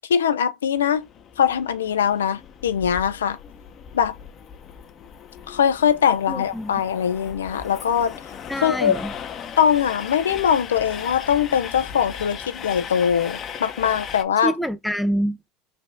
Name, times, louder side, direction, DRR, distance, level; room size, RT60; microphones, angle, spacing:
voice 1, 0.1-1.1 1.4-3.4 3.9-4.2 5.5-8.1 8.6-9.0 9.6-14.5, left 8 dB, 85° left, 0.5 m, -21 dB
Train, 0.8-14.2, left 7 dB, 45° left, 0.7 m, -38 dB
voice 2, 6.3-6.7 8.5-9.1 14.4-15.5, equal, ahead, 0.5 m, -26 dB
3.3 x 2.5 x 4.3 m
hypercardioid pair, 80°, 0 cm